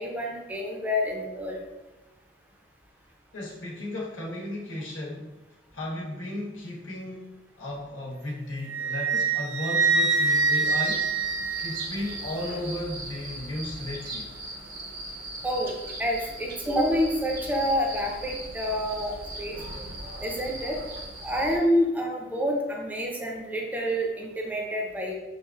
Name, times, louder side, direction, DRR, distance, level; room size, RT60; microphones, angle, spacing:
voice 1, 0.0-1.6 15.4-15.7 16.0-19.1 19.4-19.6 20.2-20.8 21.2-25.1, equal, 10° right, -1 dB, 0.5 m, -27 dB
voice 2, 3.3-5.4 5.7-11.1 11.6-14.3, left 1 dB, 90° left, -4 dB, 1.1 m, -35 dB
Wind instrument woodwind instrument, 8.7-12.2, right 4 dB, 90° right, 0.6 m, -25 dB
sound 1, 10.3-21.6, right 1 dB, 50° right, 0.6 m, -38 dB
5.6 x 2.5 x 2.3 m, 1.1 s
head